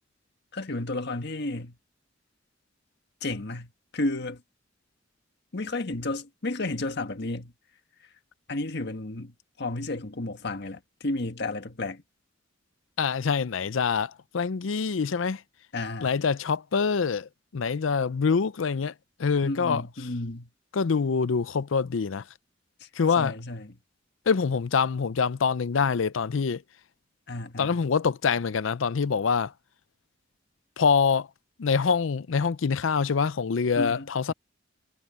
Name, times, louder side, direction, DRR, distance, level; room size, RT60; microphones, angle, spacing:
voice 1, 0.5-1.8 3.2-4.4 5.5-7.5 8.5-12.0 15.7-16.1 19.4-20.5 22.8-22.9 23.2-23.8 27.3-27.8 33.7-34.3, left 2 dB, 60° left, 1.6 m, -32 dB
voice 2, 13.0-15.4 16.0-18.9 19.2-19.8 20.7-22.2 23.0-23.3 24.3-26.6 27.6-29.5 30.8-31.3 31.6-34.3, left 5 dB, 85° left, 0.5 m, -25 dB
head